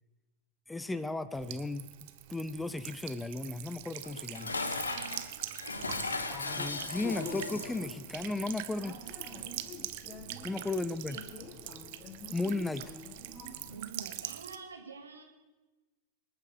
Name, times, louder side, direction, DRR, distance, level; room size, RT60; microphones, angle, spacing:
voice 1, 0.7-4.5 6.5-9.0 10.4-11.2 12.3-12.9, left 2 dB, 10° left, 15 dB, 0.6 m, -35 dB
Buzz / Water tap faucet / Trickle dribble, 1.3-14.6, right 15 dB, 50° right, 0.9 m, -44 dB
Dishes pots and pans, 4.0-7.9, left 3 dB, 75° left, 1.2 m, -37 dB
voice 2, 5.6-6.2 10.5-10.8 11.1-11.4 13.6-15.2, right 4 dB, 75° right, 4 dB, 2.3 m, -48 dB
sound 1, 5.8-13.8, left 5 dB, 25° left, 2.0 m, -46 dB
26.5 x 9.3 x 5.1 m, 1.2 s
figure-of-eight pair, 90°, 0 cm